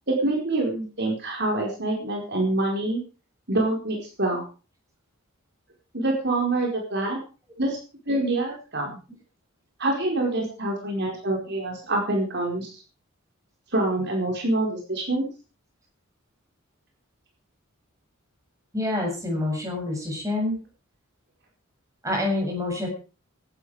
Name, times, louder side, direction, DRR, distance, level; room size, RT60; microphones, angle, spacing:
voice 1, 0.1-3.0 3.5-4.4 5.9-7.2 7.6-7.8 8.1-8.9 9.8-12.7 13.7-15.3, right 2 dB, 50° right, 0 dB, 4.8 m, -26 dB
voice 2, 18.7-20.6 22.0-22.9, left 2 dB, 15° right, 0 dB, 7.7 m, -27 dB
17.0 x 13.0 x 5.0 m, 0.36 s
head